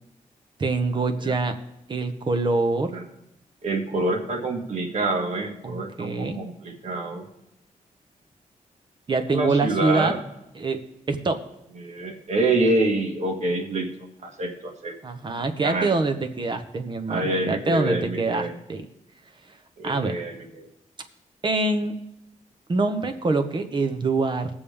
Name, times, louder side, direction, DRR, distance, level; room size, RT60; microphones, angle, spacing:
voice 1, 0.6-1.5 1.9-2.9 5.6-6.4 9.1-10.1 10.5-10.8 11.1-11.4 15.0-18.9 19.8-20.1 21.4-21.9 22.7-24.5, right 3 dB, 35° right, 7 dB, 1.0 m, -25 dB
voice 2, 3.6-7.2 9.3-10.2 11.8-13.9 14.2-15.0 15.6-15.9 17.1-18.6 19.8-20.7, right 2 dB, 55° right, 3 dB, 1.8 m, -26 dB
20.0 x 7.1 x 3.5 m, 0.84 s
wide cardioid pair, 140°, 14 cm